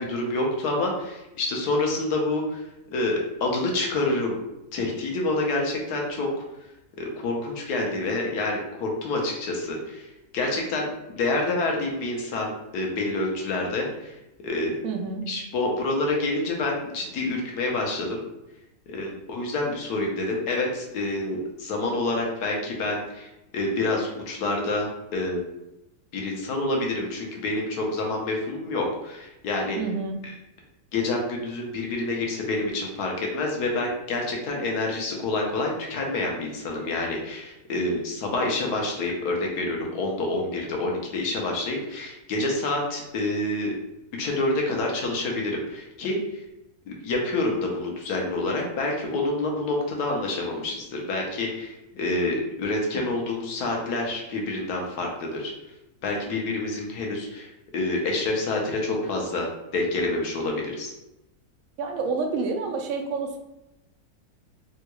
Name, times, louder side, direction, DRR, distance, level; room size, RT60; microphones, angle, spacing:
voice 1, 0.0-2.6 2.9-4.4 4.7-6.3 7.0-10.1 10.3-14.1 14.4-14.8 15.3-18.2 18.9-25.4 26.1-29.8 30.2-30.3 30.9-43.7 44.2-46.2 46.9-55.5 56.0-60.9, left 2 dB, 85° left, 0 dB, 1.3 m, -27 dB
voice 2, 14.8-15.2 29.8-30.1 61.8-63.4, right 4 dB, 70° right, 3 dB, 0.9 m, -28 dB
3.5 x 2.3 x 2.9 m, 0.92 s
omnidirectional pair, 1.6 m